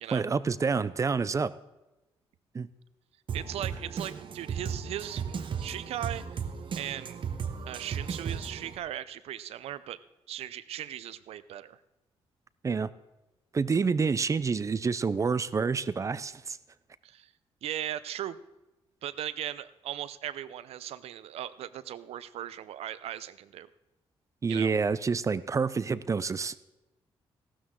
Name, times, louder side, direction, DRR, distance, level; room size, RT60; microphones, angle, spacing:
voice 1, 0.1-1.5 2.5-2.7 12.6-12.9 13.5-16.6 24.4-26.6, right 5 dB, 30° right, 17 dB, 0.6 m, -28 dB
Drum kit, 3.3-8.8, right 6 dB, 55° right, 1.1 m, -36 dB
voice 2, 3.3-6.4 6.8-7.2 7.7-10.0 10.3-11.8 17.0-17.3 17.6-18.4 19.0-23.7 24.5-24.7, right 11 dB, 80° right, 16 dB, 0.6 m, -38 dB
16.0 x 12.5 x 3.7 m, 1.0 s
cardioid pair, 95°, 10 cm